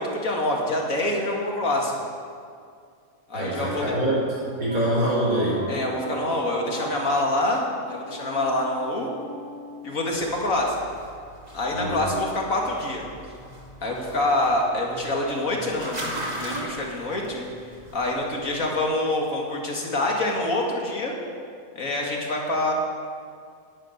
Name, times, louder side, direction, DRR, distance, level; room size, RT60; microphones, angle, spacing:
voice 1, 0.0-2.0 3.3-4.0 5.7-9.1 9.8-10.8 11.5-13.0 13.8-17.4 17.9-21.1 21.8-22.7, left 1 dB, 75° left, -1 dB, 2.6 m, -26 dB
voice 2, 3.3-5.6 11.7-12.0, right 1 dB, 80° right, -5 dB, 4.9 m, -25 dB
Wind instrument woodwind instrument, 3.6-10.5, equal, 60° right, 3.1 m, -39 dB
sound 1, 10.1-18.8, right 1 dB, 30° right, 2.1 m, -39 dB
10.5 x 10.0 x 9.2 m, 2.2 s
omnidirectional pair, 1.4 m